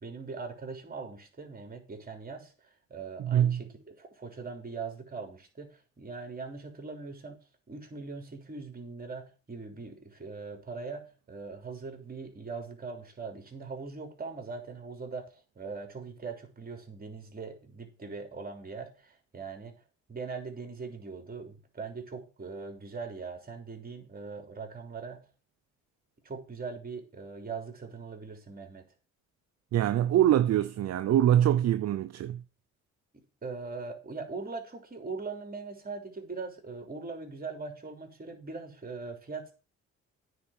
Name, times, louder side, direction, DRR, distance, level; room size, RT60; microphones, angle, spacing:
voice 1, 0.0-19.7 20.1-25.3 26.2-28.9 33.1-39.5, right 4 dB, 30° right, 3.3 m, -41 dB
voice 2, 3.2-3.6 29.7-32.4, right 11 dB, 60° right, 0.6 m, -24 dB
9.6 x 4.8 x 7.3 m
cardioid pair, 90°, 30 cm